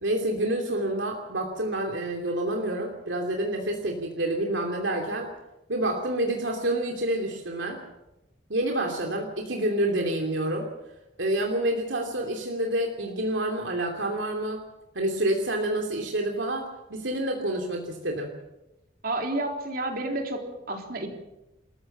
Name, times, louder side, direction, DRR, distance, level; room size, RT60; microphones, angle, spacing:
voice 1, 0.0-5.3 5.7-7.8 8.5-10.7 11.2-14.6 14.9-18.3, right 1 dB, 80° right, 2 dB, 2.8 m, -28 dB
voice 2, 19.0-21.1, right 2 dB, 50° right, 3 dB, 3.8 m, -30 dB
27.5 x 14.5 x 7.2 m, 0.95 s
head